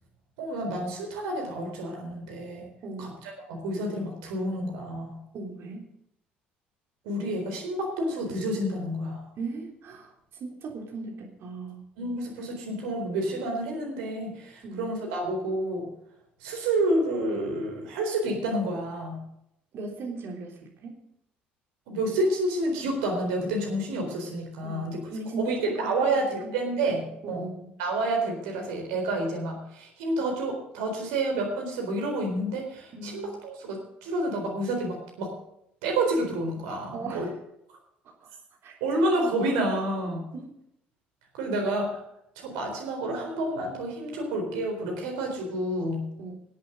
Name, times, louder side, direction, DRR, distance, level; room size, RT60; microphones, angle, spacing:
voice 1, 0.4-2.7 3.0-3.1 3.5-5.2 7.0-9.2 12.0-15.9 16.4-19.2 21.9-25.0 25.4-27.4 27.8-35.3 35.8-37.3 38.8-40.3 41.3-42.0 42.4-46.0, right 1 dB, 65° right, 1 dB, 4.1 m, -29 dB
voice 2, 2.8-3.1 5.3-5.9 9.4-10.1 10.4-11.8 14.6-14.9 19.7-21.0 24.6-26.5 26.8-27.7 32.9-33.4 36.9-37.3 38.6-39.6 40.3-40.5 46.2-46.3, right 3 dB, 50° right, 0 dB, 3.4 m, -38 dB
21.5 x 8.4 x 3.9 m, 0.76 s
figure-of-eight pair, 55°, 5 cm